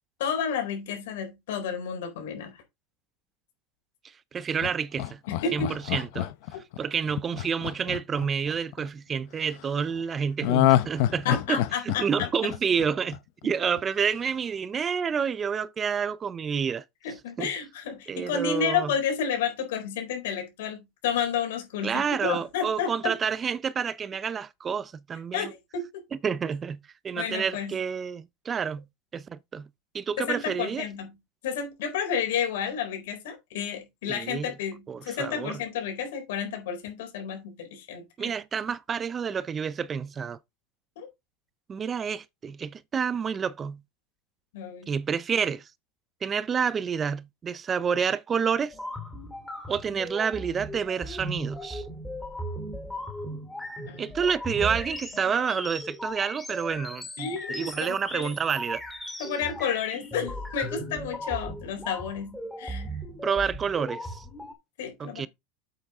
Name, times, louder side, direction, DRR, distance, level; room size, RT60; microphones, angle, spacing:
voice 1, 0.2-2.6 5.3-5.7 6.5-6.6 11.2-12.5 17.0-23.1 25.3-26.0 27.2-27.8 30.2-31.2 31.4-38.3 41.0-41.1 44.5-44.9 53.9-54.1 57.2-57.7 58.1-58.3 59.2-62.9 64.8-65.3, left 7 dB, 90° left, 4.0 m, -31 dB
voice 2, 4.3-5.2 5.5-6.3 6.8-11.6 11.8-16.8 17.4-17.5 18.1-18.9 21.8-25.5 26.2-26.8 27.0-28.8 29.1-29.7 29.9-30.8 34.1-34.5 34.9-35.6 38.2-40.4 41.7-43.8 44.9-45.7 46.2-48.7 49.7-51.9 54.0-58.8 63.2-64.3 65.0-65.3, right 6 dB, 25° right, 0.5 m, -29 dB
Laughter, 4.6-8.8 10.4-13.4 13.8-13.9, left 13 dB, 65° left, 0.7 m, -27 dB
sound 1, 48.7-64.5, equal, 5° left, 2.4 m, -37 dB
8.1 x 6.7 x 3.6 m
supercardioid pair, 145°, 0 cm